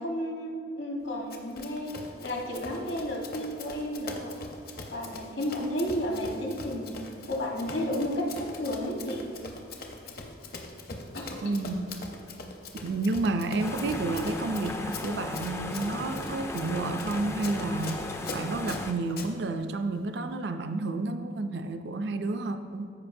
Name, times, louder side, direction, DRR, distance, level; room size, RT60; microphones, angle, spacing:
voice 1, 0.0-1.9 2.2-4.3 4.9-6.9 7.3-9.3 11.1-11.3, equal, 70° left, -1 dB, 1.3 m, -32 dB
Run, 1.3-19.3, left 3 dB, 50° left, 0.8 m, -42 dB
voice 2, 11.4-11.9 12.8-22.9, right 2 dB, 60° right, 8 dB, 0.4 m, -31 dB
sound 1, 13.6-18.9, left 2 dB, 15° left, 0.3 m, -36 dB
14.0 x 5.2 x 2.6 m, 2.3 s
head